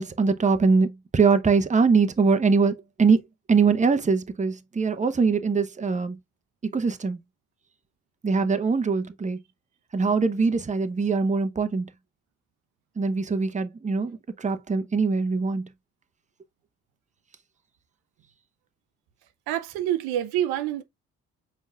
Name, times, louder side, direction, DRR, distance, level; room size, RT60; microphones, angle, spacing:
voice 1, 0.0-3.2 3.5-6.2 6.7-7.2 8.2-9.4 9.9-11.9 13.0-15.6, right 4 dB, 20° right, 0.8 m, -22 dB
voice 2, 19.5-20.8, right 12 dB, 75° right, 0.7 m, -26 dB
5.5 x 4.2 x 2.3 m
hypercardioid pair, 40°, 38 cm